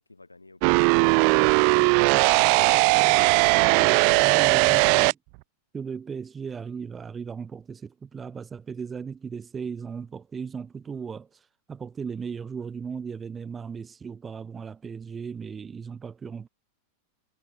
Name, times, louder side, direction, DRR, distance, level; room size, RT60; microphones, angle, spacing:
voice 1, 0.0-1.5 1.8-3.2, left 3 dB, 80° left, 4.4 m, -53 dB
sound 1, 0.6-5.1, right 40 dB or more, 45° right, 0.3 m, -19 dB
voice 2, 1.8-2.5 3.0-3.2 3.8-5.2 5.7-11.4 11.7-16.5, right 6 dB, 20° right, 0.8 m, -37 dB
figure-of-eight pair, 90°, 0 cm